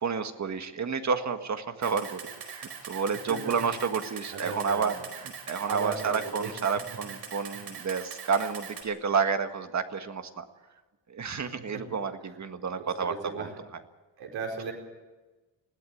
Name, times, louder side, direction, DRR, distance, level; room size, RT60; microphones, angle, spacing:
voice 1, 0.0-10.4 11.1-13.5, right 5 dB, 40° right, 7 dB, 1.7 m, -30 dB
Camera, 1.8-8.8, right 7 dB, 65° right, 4.6 m, -42 dB
voice 2, 4.3-5.0 5.7-6.5 7.5-7.6 11.7-11.8 12.8-13.5 14.2-14.7, right 5 dB, 85° right, 1 dB, 4.9 m, -36 dB
21.0 x 16.5 x 9.4 m, 1.2 s
cardioid pair, 135°, 43 cm